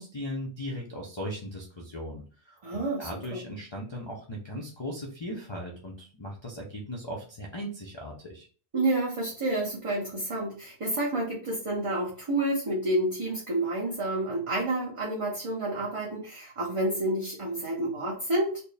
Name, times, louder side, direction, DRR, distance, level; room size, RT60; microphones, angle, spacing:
voice 1, 0.0-8.5, equal, 35° left, -1 dB, 0.5 m, -38 dB
voice 2, 2.6-3.4 8.7-18.6, right 1 dB, 35° right, -3 dB, 0.7 m, -29 dB
4.2 x 2.1 x 3.3 m, 0.40 s
omnidirectional pair, 1.2 m